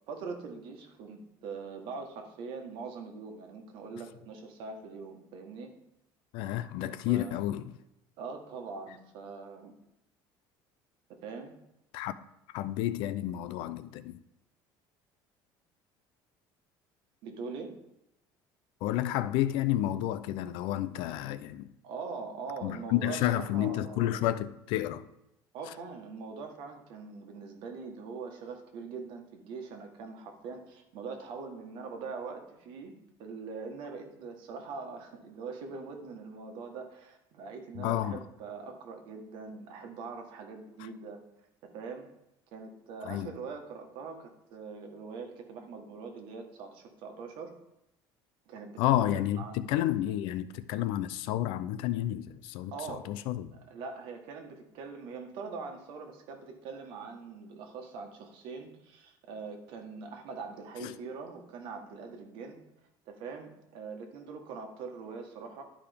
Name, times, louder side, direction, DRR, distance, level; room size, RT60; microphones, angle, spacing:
voice 1, 0.1-5.7 7.0-7.4 8.2-9.7 11.2-11.5 17.2-17.7 21.8-24.2 25.5-32.9 33.2-41.2 41.7-42.1 42.5-47.5 48.5-49.7 52.7-53.0 53.7-62.6 63.1-65.6, right 4 dB, 65° right, 1.4 m, -42 dB
voice 2, 6.3-7.7 11.9-12.1 12.5-14.2 18.8-21.7 22.6-25.0 37.8-38.2 43.0-43.3 48.8-53.6 60.8-60.9, left 13 dB, 70° left, 0.5 m, -30 dB
11.5 x 4.9 x 3.5 m
cardioid pair, 160°, 9 cm